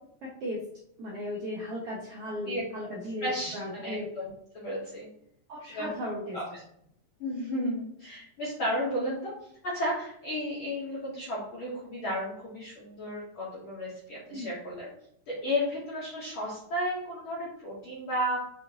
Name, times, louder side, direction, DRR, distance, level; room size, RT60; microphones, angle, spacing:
voice 1, 0.2-0.6 1.0-4.1 5.5-6.6 14.3-14.5, left 1 dB, 75° right, -4 dB, 1.4 m, -36 dB
voice 2, 2.5-4.3 4.5-5.1 5.7-5.9 6.3-6.4 7.2-9.3 9.6-14.9 15.3-18.4, equal, 65° left, -6 dB, 1.3 m, -33 dB
5.5 x 2.8 x 2.7 m, 0.70 s
omnidirectional pair, 3.5 m